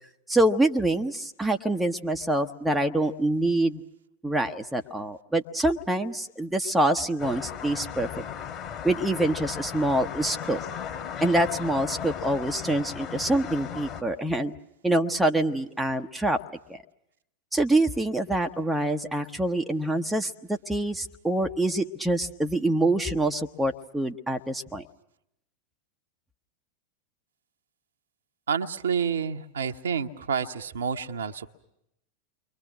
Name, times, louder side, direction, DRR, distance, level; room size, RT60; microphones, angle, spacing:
voice 1, 0.3-3.8 4.2-8.1 8.8-10.6 11.2-14.5 14.8-16.4 16.7-16.8 17.5-24.8, right 1 dB, 5° right, 4 dB, 1.1 m, -25 dB
sound 1, 7.2-14.0, left 8 dB, 30° left, 3.2 m, -36 dB
voice 2, 28.5-31.5, right 6 dB, 65° right, 6 dB, 1.1 m, -29 dB
30.0 x 23.5 x 6.2 m, 0.80 s
figure-of-eight pair, 90°, 0 cm